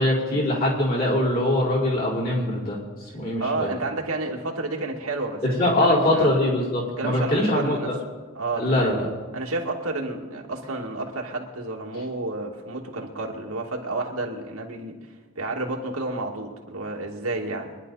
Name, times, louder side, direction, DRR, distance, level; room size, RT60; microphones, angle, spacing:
voice 1, 0.0-2.8 3.1-3.7 5.4-8.0 8.5-9.1, left 1 dB, 40° left, -5 dB, 4.5 m, -22 dB
voice 2, 3.4-6.4 7.0-7.9 8.3-9.0 9.3-15.0 15.4-17.8, right 2 dB, 90° right, 0 dB, 2.3 m, -30 dB
24.5 x 11.0 x 4.1 m, 1.3 s
head